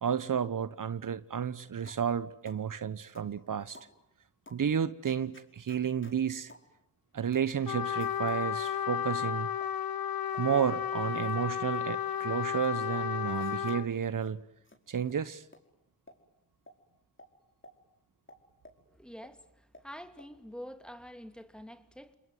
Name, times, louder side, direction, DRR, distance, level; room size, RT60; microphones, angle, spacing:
voice 1, 0.0-3.8 4.5-6.5 7.1-9.5 10.4-14.4 14.9-15.4, right 8 dB, 65° right, 1.0 m, -32 dB
sound 1, 1.9-2.1 2.5-2.7 3.2-3.4 3.7-3.9 4.5-4.7 5.1-6.2 6.5-6.7 7.3-7.5 8.0-8.4 9.0-9.8 10.3-10.5 11.0-11.4 11.7-12.7 13.3-13.8 14.2-14.3 14.7-14.8 15.1-15.2 15.5-15.6 16.1-16.2 16.7-16.8 17.2-17.3 17.6-17.8 18.3-18.8 19.2-19.3 19.7-19.9 20.2-20.3, left 1 dB, 35° left, 5.3 m, -55 dB
Trumpet, 7.7-13.9, left 9 dB, 75° left, 1.1 m, -33 dB
voice 2, 18.9-22.1, equal, ahead, 2.9 m, -47 dB
29.5 x 21.0 x 9.5 m
cardioid pair, 45°, 35 cm